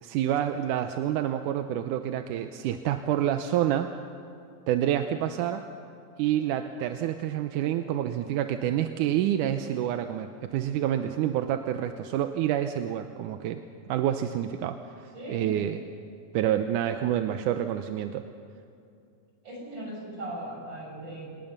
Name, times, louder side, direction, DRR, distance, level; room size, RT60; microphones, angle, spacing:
voice 1, 0.0-3.9 4.7-5.6 6.2-13.6 13.9-15.8 16.3-18.3, right 11 dB, 85° right, 8 dB, 2.2 m, -28 dB
voice 2, 15.1-15.6 19.4-21.4, right 1 dB, 35° right, -2 dB, 6.9 m, -38 dB
26.0 x 20.0 x 6.7 m, 2.5 s
omnidirectional pair, 3.6 m